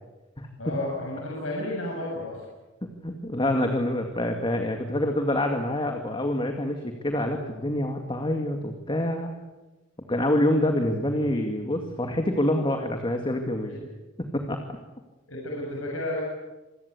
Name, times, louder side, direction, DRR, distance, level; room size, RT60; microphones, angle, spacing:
voice 1, 0.6-2.4 15.3-16.2, left 1 dB, 90° left, -3 dB, 7.7 m, -31 dB
voice 2, 2.8-9.3 10.1-13.9 14.2-14.6, left 1 dB, 25° left, 4 dB, 2.2 m, -26 dB
27.0 x 21.5 x 8.4 m, 1.1 s
head